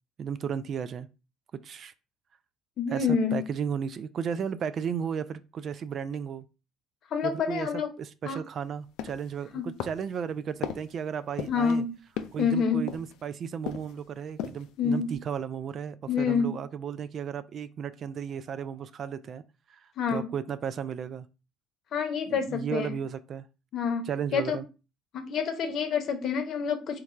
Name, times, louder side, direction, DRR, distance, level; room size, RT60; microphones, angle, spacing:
voice 1, 0.2-1.1 1.5-1.9 2.9-6.4 7.2-7.7 8.0-11.8 12.3-19.4 19.7-19.8 20.1-21.3 22.2-23.5 24.1-24.6, right 7 dB, 50° right, 0.3 m, -34 dB
voice 2, 2.8-3.4 7.1-7.9 8.3-8.4 9.5-9.7 11.5-11.9 12.4-12.9 14.8-15.1 16.1-16.5 20.0-20.3 21.9-22.9 23.7-24.6 25.1-27.0, left 6 dB, 55° left, 0.8 m, -27 dB
sound 1, 9.0-9.4 9.8-10.2 10.6-10.9 11.4-11.7 12.2-12.5 12.9-13.3 13.6-14.0 14.3-14.7 15.1-15.2, left 10 dB, 75° left, 0.4 m, -36 dB
3.2 x 2.3 x 4.3 m
supercardioid pair, 75°, 0 cm